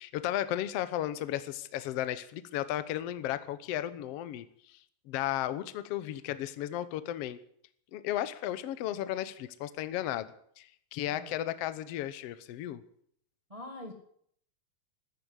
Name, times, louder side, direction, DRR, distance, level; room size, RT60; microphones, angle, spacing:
voice 1, 0.0-4.8 5.1-7.4 7.9-12.8, left 12 dB, 80° left, 13 dB, 1.4 m, -34 dB
voice 2, 11.1-11.4 13.5-13.9, left 1 dB, 20° right, 4 dB, 1.0 m, -44 dB
14.0 x 10.5 x 9.7 m, 0.65 s
omnidirectional pair, 4.1 m